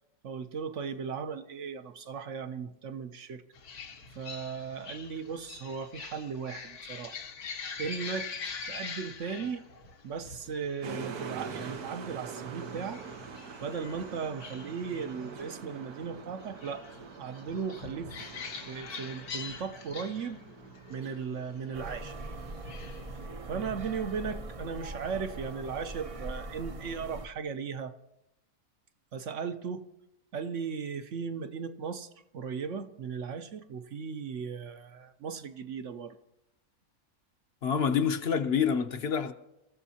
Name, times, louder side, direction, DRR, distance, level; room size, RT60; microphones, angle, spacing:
voice 1, 0.2-3.4 4.2-7.2 7.8-9.6 10.0-13.0 13.6-16.8 17.2-18.1 18.7-20.4 20.9-22.1 23.5-27.9 29.1-29.9 30.3-32.1 32.3-36.2, right 6 dB, 60° right, 1.0 m, -37 dB
sound 1, 3.5-23.3, left 5 dB, 85° left, 1.7 m, -45 dB
sound 2, 10.8-23.3, right 6 dB, 85° right, 1.5 m, -45 dB
sound 3, 21.7-27.3, right 2 dB, 35° right, 0.5 m, -41 dB
voice 2, 37.6-39.3, left 7 dB, 50° left, 0.9 m, -27 dB
27.5 x 14.5 x 2.8 m
omnidirectional pair, 1.6 m